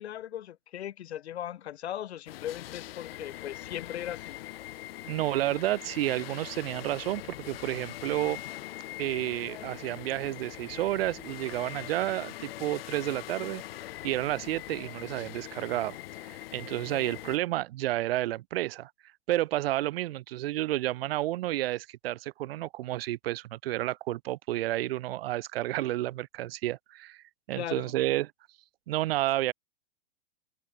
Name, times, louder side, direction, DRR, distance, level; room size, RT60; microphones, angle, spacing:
voice 1, 0.0-4.4 16.9-17.0 27.6-27.9, left 11 dB, 85° left, 2.6 m, -38 dB
sound 1, 2.3-17.4, left 15 dB, 65° left, 0.9 m, -42 dB
voice 2, 5.1-8.4 9.0-13.6 14.0-16.0 16.3-18.9 19.3-28.3 28.9-29.5, right 15 dB, 65° right, 0.6 m, -31 dB
open air
supercardioid pair, 160°, 32 cm